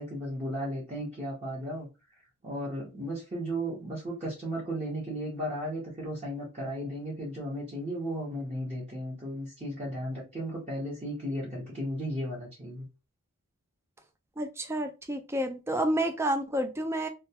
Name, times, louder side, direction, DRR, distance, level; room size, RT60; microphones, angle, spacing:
voice 1, 0.0-1.9 2.4-12.8, equal, 30° right, 0.8 m, -35 dB
voice 2, 14.4-17.1, right 1 dB, 10° right, 0.3 m, -29 dB
2.3 x 2.2 x 2.7 m
head